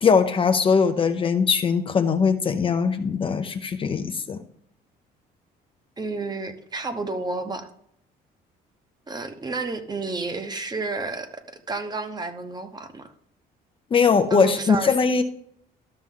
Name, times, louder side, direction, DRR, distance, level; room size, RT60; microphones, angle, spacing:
voice 1, 0.0-4.4 13.9-15.2, left 5 dB, 30° left, 8 dB, 0.6 m, -21 dB
voice 2, 6.0-7.7 9.1-11.4 11.7-13.1 14.3-15.0, right 3 dB, 25° right, 8 dB, 1.0 m, -31 dB
12.5 x 5.9 x 3.8 m, 0.71 s
cardioid pair, 110°, 17 cm